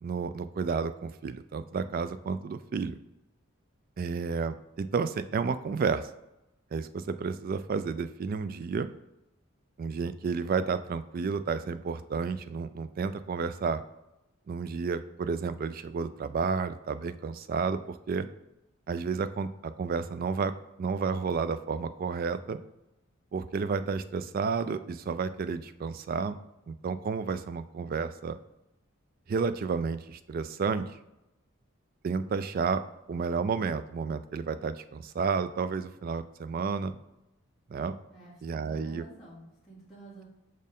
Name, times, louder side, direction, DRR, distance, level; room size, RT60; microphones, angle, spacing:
voice 1, 0.0-3.0 4.0-6.1 6.7-8.9 9.8-13.8 14.5-18.3 18.9-20.5 20.8-22.6 23.3-26.4 26.7-28.4 29.3-30.9 32.0-32.8 33.1-37.0 37.7-38.0 38.4-39.1, right 5 dB, 45° right, 12 dB, 0.3 m, -31 dB
voice 2, 38.1-40.2, right 2 dB, ahead, -11 dB, 2.3 m, -50 dB
6.3 x 4.4 x 3.5 m, 0.92 s
head